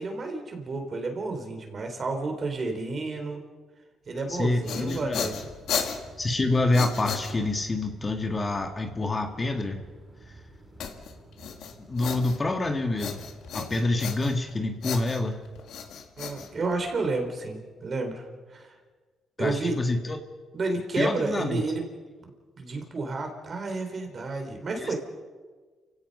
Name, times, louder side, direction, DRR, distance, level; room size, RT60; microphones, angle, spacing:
voice 1, 0.0-3.4 4.1-5.4 16.2-18.7 19.4-19.8 20.5-21.8 22.2-22.3 22.6-25.0, right 3 dB, 40° right, 4 dB, 4.1 m, -31 dB
sound 1, 4.3-7.7 10.8-12.6 13.0-14.5 14.8-17.1, left 7 dB, 75° left, 1.9 m, -35 dB
voice 2, 4.3-5.3 6.2-9.8 11.8-13.2 13.5-15.4 19.4-20.2 21.0-21.6 24.8-24.9, left 2 dB, 25° left, 5 dB, 2.0 m, -27 dB
sound 2, 4.8-13.8, right 2 dB, 25° right, 5.7 m, -51 dB
29.0 x 16.5 x 5.6 m, 1.4 s
cardioid pair, 90°, 0 cm